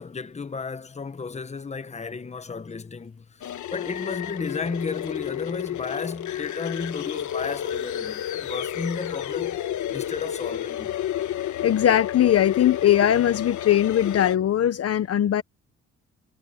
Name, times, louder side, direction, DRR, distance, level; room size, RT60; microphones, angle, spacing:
voice 1, 0.0-9.6 9.9-11.0, left 4 dB, 20° left, 1.1 m, -33 dB
sound 1, 3.4-14.4, left 11 dB, 75° left, 1.5 m, -31 dB
voice 2, 11.6-15.4, left 11 dB, 55° left, 0.9 m, -20 dB
cardioid pair, 90°, 30 cm